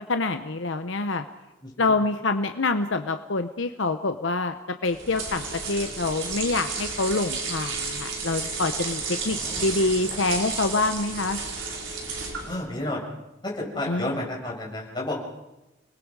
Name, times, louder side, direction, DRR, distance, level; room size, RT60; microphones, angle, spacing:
voice 1, 0.1-1.2 1.8-4.6 4.8-11.4 13.9-14.2, left 3 dB, 70° left, 7 dB, 0.9 m, -26 dB
voice 2, 1.6-1.9 9.3-9.7 12.5-13.0 13.4-15.1, left 1 dB, 20° left, -3 dB, 6.4 m, -31 dB
sound 1, 4.8-12.7, right 4 dB, 70° right, 4.8 m, -32 dB
29.5 x 21.0 x 4.8 m, 0.98 s
head